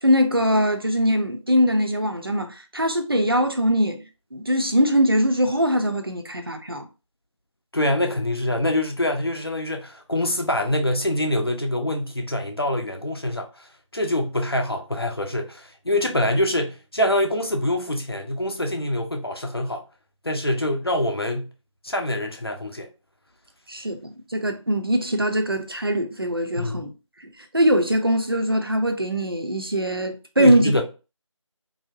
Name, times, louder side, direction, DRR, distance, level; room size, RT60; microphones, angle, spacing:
voice 1, 0.0-4.1 4.3-6.9 23.7-26.9 27.2-27.3 27.5-30.7, equal, 45° right, 0.5 m, -22 dB
voice 2, 7.7-13.7 13.9-19.8 20.2-21.5 21.8-22.9 26.6-26.8 30.4-30.8, left 1 dB, 50° left, 0.7 m, -25 dB
3.3 x 2.7 x 2.7 m
figure-of-eight pair, 175°, 17 cm